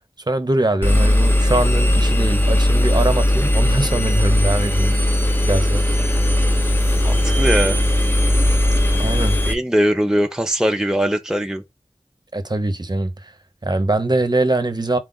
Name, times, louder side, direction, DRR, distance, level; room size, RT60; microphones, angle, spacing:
voice 1, 0.3-5.0 5.4-6.1 9.0-9.4 12.3-13.3 13.6-15.0, right 2 dB, 40° right, 0.7 m, -22 dB
Engine, 0.8-9.5, left 1 dB, 20° left, 0.9 m, -18 dB
voice 2, 7.0-7.8 9.5-11.6, equal, 5° right, 0.5 m, -20 dB
4.4 x 2.4 x 3.8 m
wide cardioid pair, 45°, 11 cm